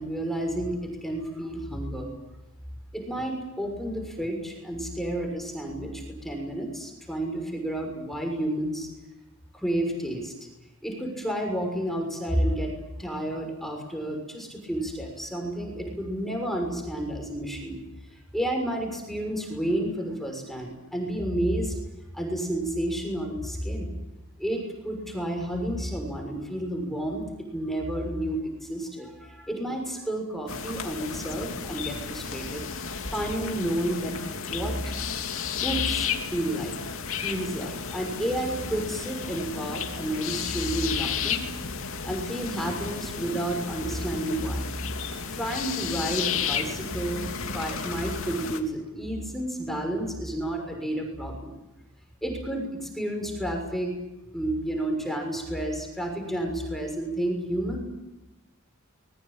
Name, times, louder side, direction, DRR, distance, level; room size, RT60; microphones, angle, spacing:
voice 1, 0.0-2.1 2.9-8.9 9.5-10.3 10.8-12.7 13.0-17.8 18.3-21.7 22.1-23.9 24.4-27.2 27.5-32.6 33.1-34.2 34.5-34.9 35.6-36.7 37.2-41.5 42.0-44.9 45.3-47.3 47.5-51.6 52.2-53.9 54.3-57.8, right 1 dB, ahead, 2 dB, 6.4 m, -31 dB
sound 1, 30.5-48.6, left 6 dB, 70° left, 2.9 m, -33 dB
25.0 x 21.5 x 9.1 m, 1.0 s
head